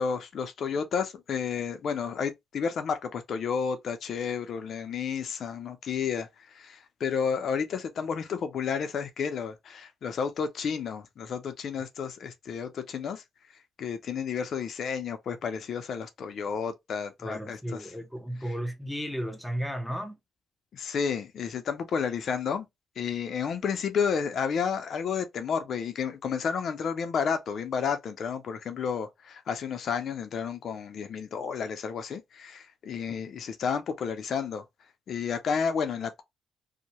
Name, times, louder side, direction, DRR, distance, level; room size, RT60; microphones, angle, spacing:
voice 1, 0.0-13.2 13.8-17.9 20.7-22.7 23.0-34.6 35.1-36.2, left 6 dB, 60° left, 0.4 m, -31 dB
voice 2, 17.2-20.2, equal, ahead, 0.6 m, -34 dB
2.7 x 2.1 x 2.9 m
cardioid pair, 90°, 0 cm